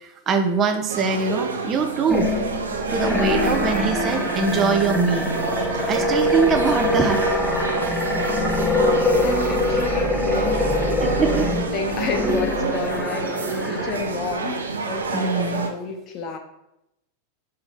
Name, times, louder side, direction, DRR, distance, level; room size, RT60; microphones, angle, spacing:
voice 1, 0.0-2.3 2.9-5.3 5.6-7.2 11.2-11.5 15.1-15.7, right 5 dB, 25° right, 5 dB, 0.8 m, -23 dB
sound 1, 0.9-15.7, right 4 dB, 70° right, 0.9 m, -28 dB
sound 2, 2.1-14.4, left 1 dB, 10° left, 0.7 m, -24 dB
voice 2, 9.2-11.1 11.7-13.4 13.7-16.4, left 6 dB, 35° left, 5 dB, 1.1 m, -30 dB
5.8 x 3.8 x 5.7 m, 0.86 s
figure-of-eight pair, 90°, 0 cm